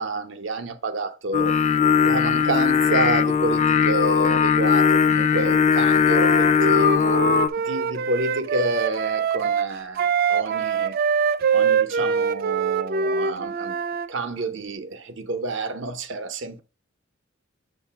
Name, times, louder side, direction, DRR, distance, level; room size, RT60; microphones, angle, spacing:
voice 1, 0.0-1.6 2.0-7.3 7.6-11.0 11.5-13.8 14.1-16.6, right 3 dB, 65° right, 0.8 m, -29 dB
Singing, 1.3-7.5, left 7 dB, 35° left, 0.3 m, -19 dB
Wind instrument woodwind instrument, 6.1-14.1, right 6 dB, 45° right, 0.3 m, -24 dB
7.4 x 2.6 x 5.7 m
head